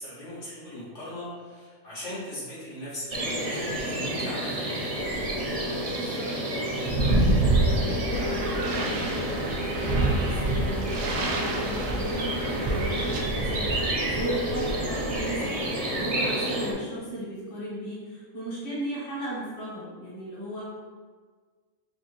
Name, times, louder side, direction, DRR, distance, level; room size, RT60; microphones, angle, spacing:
voice 1, 0.0-4.8, left 1 dB, 75° left, -9 dB, 1.6 m, -38 dB
sound 1, 3.1-16.7, right 1 dB, 40° right, 0.5 m, -27 dB
voice 2, 6.0-6.7 7.5-13.7 14.1-15.6 15.9-20.7, right 1 dB, 45° left, -8 dB, 1.3 m, -36 dB
sound 2, 8.1-13.2, right 1 dB, 75° right, 0.9 m, -34 dB
4.1 x 2.7 x 3.0 m, 1.5 s
omnidirectional pair, 1.3 m